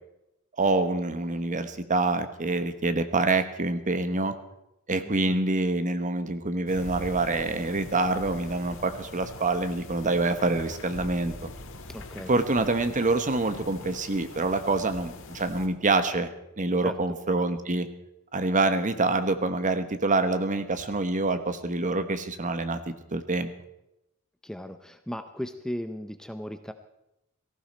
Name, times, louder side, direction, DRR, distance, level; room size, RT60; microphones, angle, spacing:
voice 1, 0.6-4.3 4.9-11.5 12.3-16.3 16.6-17.9 18.3-22.8 23.1-23.5, right 3 dB, 35° right, 10 dB, 1.1 m, -26 dB
sound 1, 6.7-15.7, left 2 dB, 65° left, 1.7 m, -43 dB
voice 2, 11.9-12.3 16.8-17.2 24.4-26.7, equal, 5° left, 8 dB, 0.6 m, -37 dB
18.0 x 15.0 x 4.3 m, 0.88 s
head